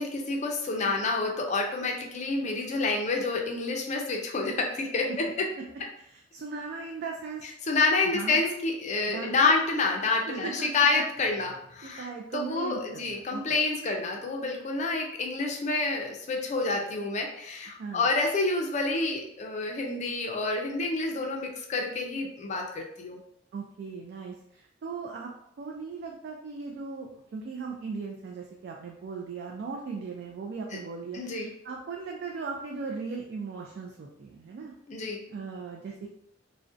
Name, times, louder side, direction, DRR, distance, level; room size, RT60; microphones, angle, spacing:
voice 1, 0.0-5.5 7.7-23.2 31.1-31.5 34.9-35.2, left 3 dB, 40° left, 1 dB, 0.4 m, -28 dB
voice 2, 6.0-7.4 8.1-8.5 9.1-9.5 10.3-11.0 11.8-13.4 17.8-18.1 23.5-25.3 25.6-34.7 35.3-36.1, right 4 dB, 55° right, 0 dB, 0.3 m, -38 dB
2.5 x 2.1 x 2.5 m, 0.75 s
head